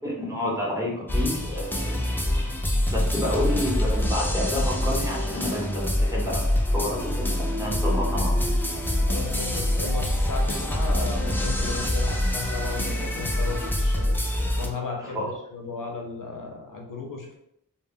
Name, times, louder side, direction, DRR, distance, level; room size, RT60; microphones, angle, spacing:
voice 1, 0.0-2.0 2.9-6.4 6.7-8.5 15.0-15.3, left 1 dB, 10° right, -5 dB, 0.8 m, -29 dB
sound 1, 1.1-14.7, left 1 dB, 5° left, 0.3 m, -25 dB
voice 2, 9.1-14.2 14.6-17.4, left 4 dB, 65° left, 1 dB, 0.5 m, -35 dB
2.1 x 2.1 x 3.5 m, 0.78 s
wide cardioid pair, 65°, 35 cm